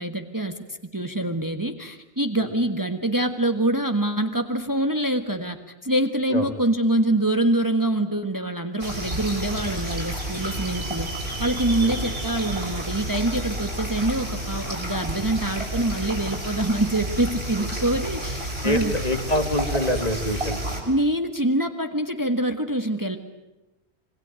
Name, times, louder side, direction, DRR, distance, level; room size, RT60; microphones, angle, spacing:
voice 1, 0.0-18.9 20.9-23.2, right 1 dB, 20° right, 6 dB, 1.5 m, -25 dB
sound 1, 8.8-20.8, right 1 dB, 70° right, 7.2 m, -30 dB
voice 2, 18.6-20.8, left 1 dB, 35° left, 6 dB, 2.4 m, -26 dB
27.0 x 23.0 x 9.0 m, 0.98 s
omnidirectional pair, 1.1 m